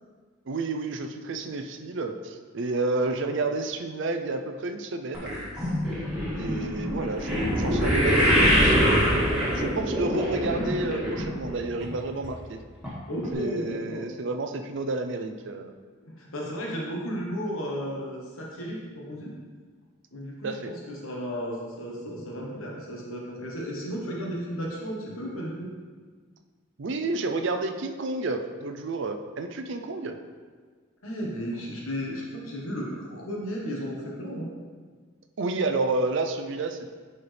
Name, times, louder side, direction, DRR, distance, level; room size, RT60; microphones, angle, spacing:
voice 1, 0.5-5.4 6.3-12.6 13.3-15.7 20.4-20.7 26.8-30.2 35.4-36.9, right 3 dB, 60° right, 6 dB, 0.5 m, -30 dB
sound 1, 5.1-11.5 11.8-12.3 12.8-12.9 13.2-13.3, equal, 5° right, 1.9 m, -24 dB
voice 2, 13.1-14.1 16.2-19.3 20.1-25.7 31.0-34.5, equal, 85° left, -3 dB, 1.3 m, -34 dB
10.5 x 4.2 x 3.4 m, 1.5 s
head